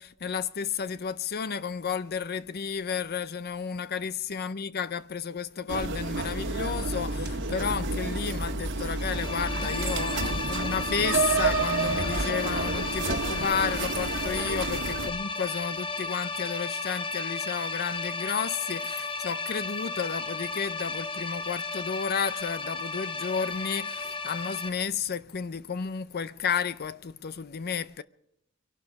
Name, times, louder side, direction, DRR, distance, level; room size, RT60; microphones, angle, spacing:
voice 1, 0.0-28.0, left 6 dB, 50° left, 0.5 m, -32 dB
sound 1, 5.7-15.1, right 3 dB, 60° right, 1.5 m, -30 dB
sound 2, 9.0-24.7, left 4 dB, 25° left, 1.0 m, -34 dB
23.5 x 12.0 x 4.7 m
head